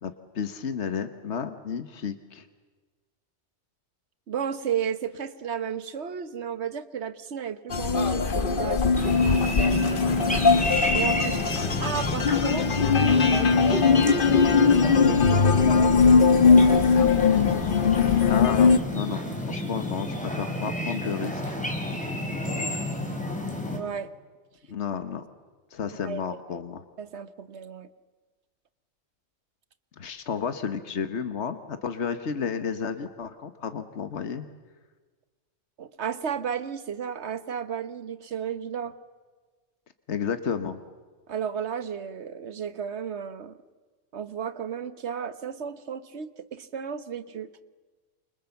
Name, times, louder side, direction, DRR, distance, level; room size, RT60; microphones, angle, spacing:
voice 1, 0.0-2.5 18.3-21.6 24.7-25.2 25.7-26.8 30.0-34.5 40.1-40.8, left 6 dB, 75° left, 9 dB, 1.6 m, -32 dB
voice 2, 4.3-10.2 10.9-11.4 11.8-12.7 13.0-16.8 23.7-24.1 26.0-26.6 27.0-27.9 35.8-38.9 41.3-43.6 44.1-47.5, right 7 dB, 75° right, 13 dB, 1.4 m, -34 dB
sound 1, 7.7-18.8, left 5 dB, 50° left, 1.3 m, -20 dB
sound 2, 9.0-23.8, left 1 dB, 5° left, 4.4 m, -31 dB
29.0 x 25.5 x 7.1 m, 1.3 s
omnidirectional pair, 1.2 m